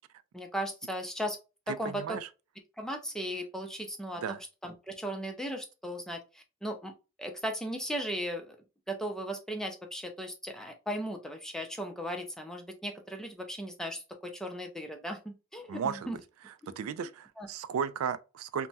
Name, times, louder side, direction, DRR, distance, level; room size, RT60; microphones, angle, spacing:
voice 1, 0.3-1.4 1.7-2.2 2.8-6.9 7.2-8.6 8.9-16.2 16.6-16.7 17.4-17.5, equal, ahead, 0.4 m, -37 dB
voice 2, 1.7-2.3 4.2-4.4 15.7-16.1 16.5-18.7, right 7 dB, 85° right, 0.3 m, -35 dB
3.3 x 2.1 x 2.6 m
head